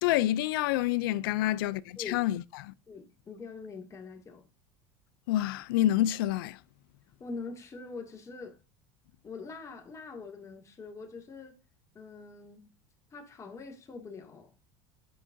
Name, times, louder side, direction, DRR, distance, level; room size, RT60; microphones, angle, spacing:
voice 1, 0.0-2.7 5.3-6.6, left 14 dB, 90° left, 0.4 m, -28 dB
voice 2, 2.9-4.5 7.2-8.6 9.2-11.6 11.9-12.7 13.1-14.5, left 4 dB, 25° left, 2.2 m, -44 dB
11.0 x 4.7 x 2.6 m
supercardioid pair, 120°, 11 cm